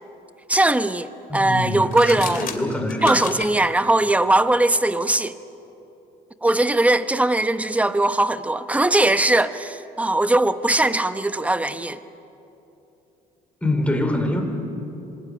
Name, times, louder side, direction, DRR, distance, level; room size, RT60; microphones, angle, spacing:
voice 1, 0.5-2.5 3.0-5.4 6.4-12.0, right 2 dB, 10° right, 0.9 m, -20 dB
voice 2, 1.3-3.3 13.6-14.4, left 1 dB, 5° left, 4.2 m, -25 dB
sound 1, 1.8-3.5, left 8 dB, 55° left, 2.5 m, -33 dB
26.0 x 21.0 x 9.8 m
cardioid pair, 110°, 17 cm